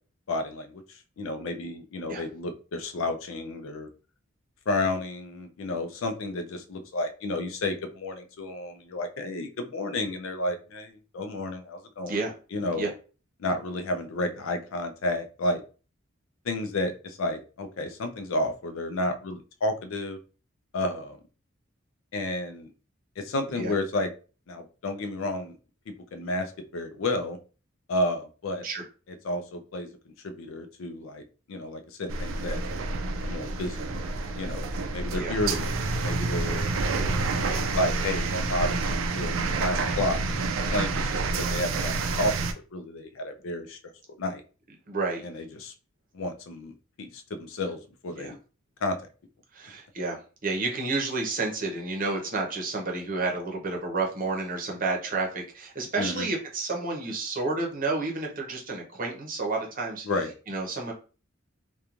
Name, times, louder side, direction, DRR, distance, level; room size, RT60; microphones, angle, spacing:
voice 1, 0.3-3.9 4.7-12.2 12.5-12.9 13.4-15.6 16.4-20.2 20.7-21.2 22.1-22.7 23.2-24.1 24.5-25.6 25.9-27.4 27.9-28.6 29.2-29.9 30.2-31.2 31.5-32.6 33.2-34.0 34.3-36.7 37.7-42.3 42.7-43.8 44.2-44.4 45.2-45.7 46.1-48.4 48.8-49.0 56.0-56.3 60.0-60.3, left 1 dB, 75° left, 7 dB, 0.4 m, -31 dB
sound 1, 32.1-42.5, right 3 dB, 75° right, 0.4 m, -28 dB
voice 2, 44.9-45.2 48.2-48.3 49.5-60.1 60.5-60.9, right 3 dB, 45° right, 1 dB, 0.7 m, -30 dB
2.9 x 2.2 x 2.4 m, 0.36 s
head